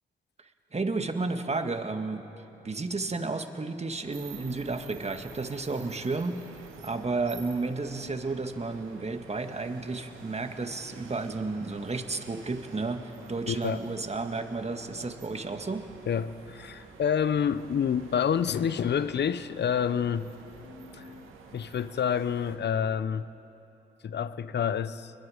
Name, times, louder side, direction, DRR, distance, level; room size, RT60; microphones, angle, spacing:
voice 1, 0.7-2.2 2.6-6.4 6.8-15.9, right 3 dB, 30° right, 7 dB, 1.9 m, -32 dB
sound 1, 4.0-22.6, right 5 dB, 80° right, 2.2 m, -49 dB
voice 2, 13.5-13.8 16.1-20.3 20.9-21.1 21.5-23.3 24.0-25.1, left 8 dB, 55° left, 15 dB, 0.8 m, -28 dB
sound 2, 20.1-21.8, left 1 dB, 85° left, 6.5 m, -57 dB
29.5 x 21.5 x 5.1 m, 2.9 s
supercardioid pair, 45°, 21 cm